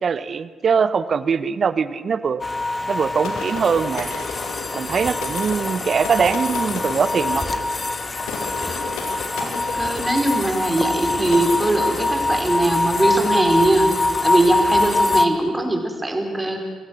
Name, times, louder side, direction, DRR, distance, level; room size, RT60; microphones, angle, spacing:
voice 1, 0.0-2.4 2.9-4.3 4.7-7.4, right 6 dB, 50° right, 15 dB, 0.9 m, -22 dB
sound 1, 2.4-15.3, left 2 dB, 30° left, 1.8 m, -24 dB
sound 2, 3.2-12.9, left 4 dB, 75° left, 2.7 m, -34 dB
voice 2, 9.4-13.9 14.2-16.6, right 2 dB, 20° right, 3 dB, 4.5 m, -21 dB
27.0 x 15.0 x 6.4 m, 1.5 s
hypercardioid pair, 40°, 0 cm